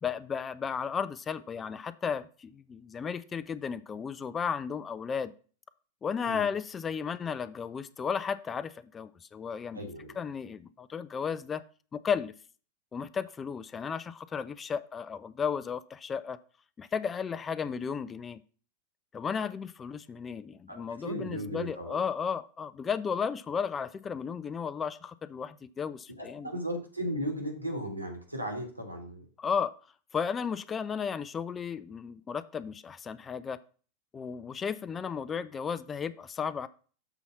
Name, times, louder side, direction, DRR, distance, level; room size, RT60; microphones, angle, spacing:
voice 1, 0.0-5.3 6.0-9.9 10.2-11.6 11.9-12.3 12.9-16.4 16.8-18.4 19.1-26.5 29.4-29.7 30.1-33.6 34.1-36.7, left 6 dB, 20° left, 15 dB, 0.4 m, -34 dB
voice 2, 9.7-10.1 20.7-22.0 26.2-29.3, equal, 85° right, 3 dB, 1.9 m, -36 dB
6.9 x 4.1 x 5.9 m, 0.40 s
figure-of-eight pair, 90°, 0 cm